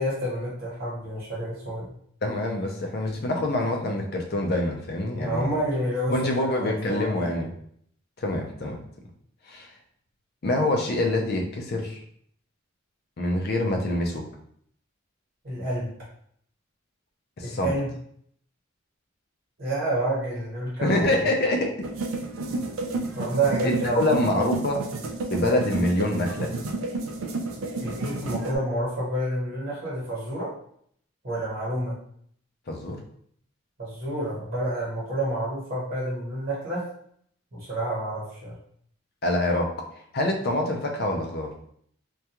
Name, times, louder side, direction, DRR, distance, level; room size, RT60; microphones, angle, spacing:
voice 1, 0.0-1.9 5.1-7.1 15.4-15.9 17.4-17.9 19.6-21.1 23.2-24.2 27.8-30.5 31.2-32.0 33.8-36.8 37.5-38.5, right 1 dB, 45° right, -6 dB, 1.1 m, -29 dB
voice 2, 2.2-5.5 6.1-7.5 8.2-8.8 9.5-9.7 10.4-12.0 13.2-14.2 17.4-17.8 20.8-21.9 23.6-24.8 25.3-26.5 32.7-33.0 39.2-39.7 40.1-41.5, left 1 dB, 45° left, 2 dB, 0.4 m, -25 dB
sound 1, 21.8-28.6, right 2 dB, 70° right, 0.3 m, -31 dB
2.3 x 2.3 x 2.8 m, 0.65 s
head